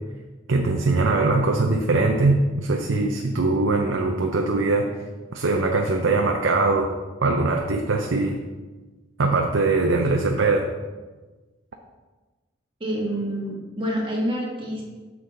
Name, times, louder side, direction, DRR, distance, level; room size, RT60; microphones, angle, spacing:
voice 1, 0.5-4.9 5.3-6.9 7.2-8.4 9.2-10.7, right 3 dB, 75° right, 2 dB, 0.7 m, -21 dB
voice 2, 12.8-14.8, equal, 25° right, -2 dB, 1.5 m, -27 dB
8.2 x 6.2 x 3.9 m, 1.3 s
head